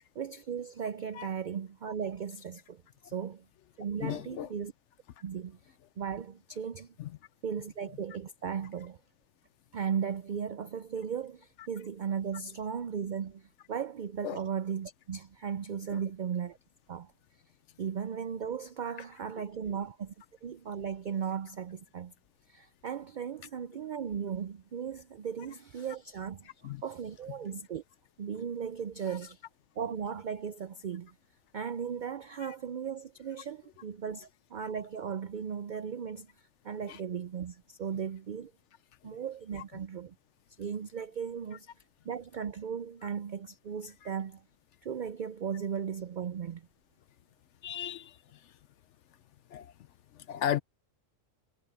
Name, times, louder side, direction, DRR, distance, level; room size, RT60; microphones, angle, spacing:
voice 1, 0.2-3.4 3.8-4.7 5.2-5.6 6.0-6.9 7.4-9.0 9.7-13.4 13.7-16.6 16.9-17.1 17.8-20.1 20.4-22.1 22.5-26.5 26.8-27.8 28.2-29.4 29.8-31.1 31.5-36.3 36.6-38.5 39.0-40.1 40.6-41.7 42.1-44.4 44.8-46.6, right 7 dB, 65° right, 0.4 m, -36 dB
voice 2, 4.0-4.5 7.0-7.1 14.2-14.4 15.9-16.0 26.6-26.8 36.9-37.0 47.6-48.2 49.5-49.7 50.1-50.6, left 10 dB, 65° left, 0.9 m, -34 dB
omnidirectional pair, 1.4 m